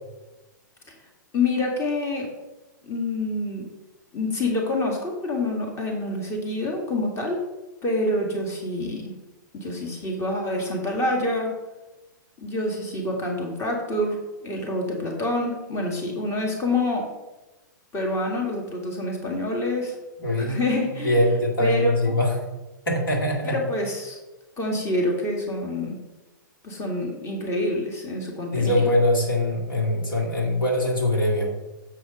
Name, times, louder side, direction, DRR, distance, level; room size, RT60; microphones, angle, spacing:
voice 1, 1.3-2.3 2.8-3.7 4.1-7.4 7.8-9.1 9.5-11.5 12.4-14.2 14.4-17.1 17.9-19.9 20.4-21.2 21.6-22.2 23.4-24.2 24.6-26.0 26.6-28.8, left 2 dB, 25° left, 1 dB, 2.0 m, -27 dB
voice 2, 20.2-20.7 21.0-22.3 22.9-23.6 28.5-31.5, left 1 dB, 85° left, -1 dB, 2.0 m, -22 dB
7.5 x 4.9 x 5.4 m, 1.1 s
hypercardioid pair, 115°, 11 cm